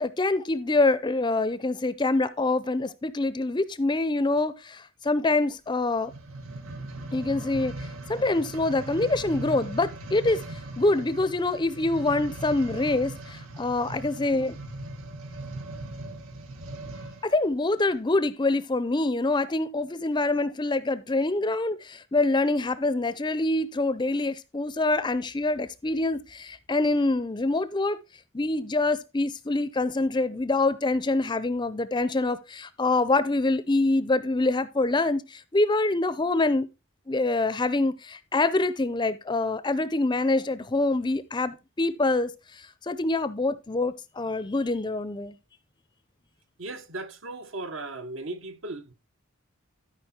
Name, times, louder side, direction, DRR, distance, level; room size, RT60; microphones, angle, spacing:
voice 1, 0.0-6.1 7.1-10.4 10.8-14.6 17.2-28.0 28.3-36.7 37.1-45.4, left 2 dB, 20° left, 0.5 m, -25 dB
sound 1, 6.0-17.3 17.9-18.0, right 2 dB, 85° right, 1.5 m, -39 dB
voice 2, 46.6-48.9, right 2 dB, 65° right, 1.3 m, -37 dB
13.0 x 5.2 x 4.3 m
head